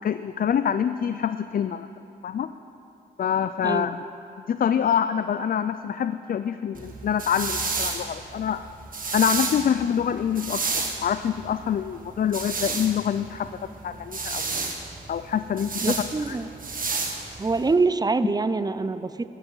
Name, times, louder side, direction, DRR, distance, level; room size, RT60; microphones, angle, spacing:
voice 1, 0.0-1.9 2.2-2.5 3.2-4.0 4.5-8.6 9.1-14.4 15.1-16.0 16.3-16.4, left 8 dB, 50° left, 12 dB, 0.4 m, -26 dB
sound 1, 6.7-17.7, right 4 dB, 45° right, 1.5 m, -31 dB
voice 2, 15.8-16.5 17.4-19.3, right 3 dB, 20° right, 13 dB, 0.5 m, -25 dB
12.5 x 9.5 x 5.5 m, 2.9 s
cardioid pair, 55°, 20 cm